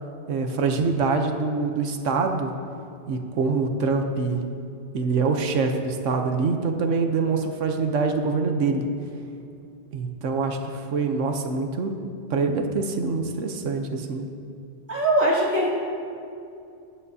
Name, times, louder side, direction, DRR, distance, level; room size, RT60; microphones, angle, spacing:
voice 1, 0.3-2.5 3.1-4.4 4.9-8.9 9.9-12.0 12.3-14.3, right 4 dB, 90° right, 5 dB, 1.2 m, -25 dB
voice 2, 14.9-15.7, right 1 dB, 15° right, -10 dB, 2.9 m, -21 dB
20.5 x 9.3 x 2.7 m, 2.5 s
omnidirectional pair, 1.2 m